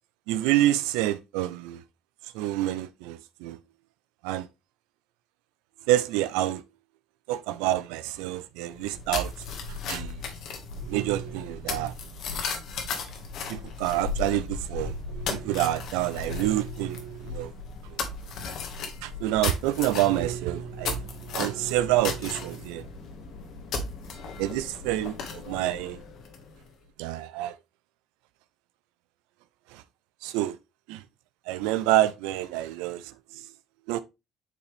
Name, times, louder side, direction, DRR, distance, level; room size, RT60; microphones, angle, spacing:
voice 1, 0.3-1.8 2.3-3.6 4.2-4.5 5.9-6.6 7.3-9.3 9.9-10.2 10.8-11.9 13.5-17.5 19.0-21.0 21.3-22.8 24.4-26.0 27.0-27.5 29.7-29.8 30.2-30.6 30.9-31.0 31.5-33.1 33.9-34.0, right 14 dB, 85° right, 0.5 m, -27 dB
sound 1, 8.7-26.7, left 4 dB, 70° left, 1.7 m, -36 dB
8.3 x 4.2 x 3.3 m
supercardioid pair, 80°, 0 cm